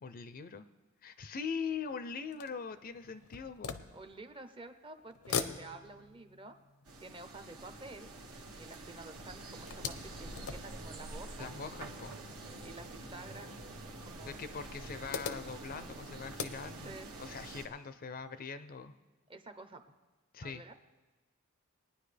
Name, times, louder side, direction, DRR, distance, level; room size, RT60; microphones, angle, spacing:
voice 1, 0.0-0.6 1.0-3.8 11.4-12.1 14.2-16.9 17.2-18.9 20.3-20.6, left 5 dB, 40° left, 11 dB, 0.4 m, -42 dB
sound 1, 1.7-4.6 5.0-8.9 9.3-11.9 12.8-12.9 13.2-13.3 14.5-17.1, left 6 dB, 85° left, 0.7 m, -43 dB
voice 2, 3.9-6.6 7.0-8.1 8.6-11.5 12.6-14.5 16.8-17.1 19.3-19.8 20.4-20.7, right 2 dB, 25° right, 8 dB, 0.6 m, -50 dB
sound 2, 6.9-17.7, right 2 dB, 80° right, 1.3 m, -47 dB
21.5 x 9.8 x 3.3 m, 1.2 s
head